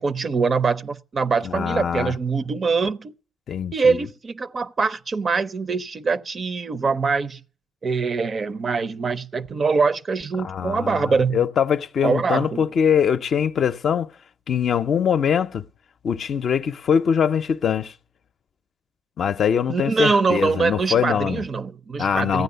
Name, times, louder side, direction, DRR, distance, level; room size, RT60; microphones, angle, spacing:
voice 1, 0.0-3.1 3.7-7.4 7.8-11.4 12.0-12.6 19.7-22.4, right 4 dB, 40° right, 0.5 m, -23 dB
voice 2, 1.4-2.1 3.5-4.0 10.4-14.1 14.5-15.6 16.0-17.9 19.2-21.4 22.0-22.4, left 7 dB, 60° left, 0.5 m, -22 dB
14.5 x 9.4 x 6.7 m
cardioid pair, 90°, 0 cm